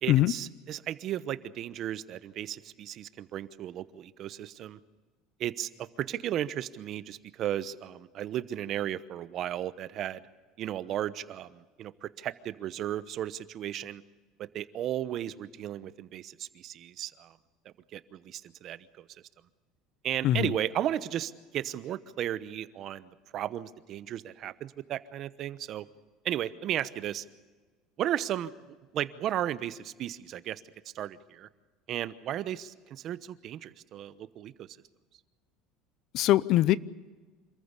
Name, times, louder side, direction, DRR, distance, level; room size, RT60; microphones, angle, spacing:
voice 1, 0.0-4.8 5.4-10.2 10.6-14.0 14.4-17.4 17.6-19.1 20.0-25.9 26.2-27.2 28.0-28.5 28.9-30.6 30.9-31.5 31.9-34.7, right 11 dB, 45° right, 15 dB, 0.9 m, -35 dB
voice 2, 36.1-36.8, left 14 dB, 55° left, 20 dB, 0.6 m, -22 dB
26.5 x 14.5 x 8.3 m, 1.4 s
supercardioid pair, 130°, 0 cm